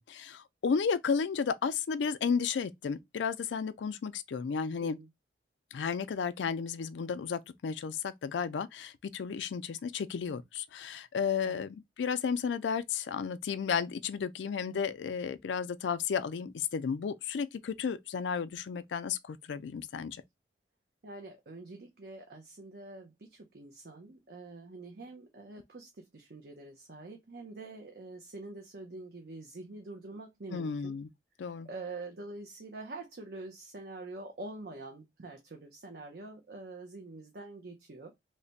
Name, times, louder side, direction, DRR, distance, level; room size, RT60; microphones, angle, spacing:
voice 1, 0.0-5.0 5.7-20.2 30.5-31.1 31.4-31.7, left 6 dB, 85° left, 0.4 m, -33 dB
voice 2, 4.8-5.1 11.4-11.6 21.0-31.0 31.4-38.1, right 2 dB, 60° right, 0.6 m, -46 dB
3.3 x 2.1 x 3.9 m
head